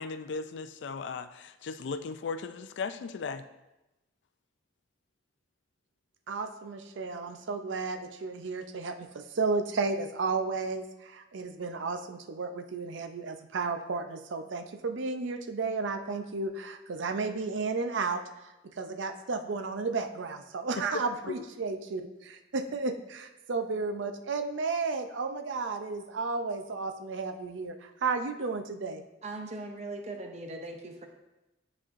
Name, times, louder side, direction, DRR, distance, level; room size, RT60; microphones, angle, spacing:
voice 1, 0.0-3.5 20.8-21.4, left 4 dB, 70° left, 10 dB, 0.4 m, -37 dB
voice 2, 6.3-29.0, right 4 dB, 80° right, 7 dB, 0.5 m, -33 dB
voice 3, 29.2-31.1, right 2 dB, 35° right, 4 dB, 0.6 m, -39 dB
9.7 x 4.3 x 2.5 m, 0.98 s
head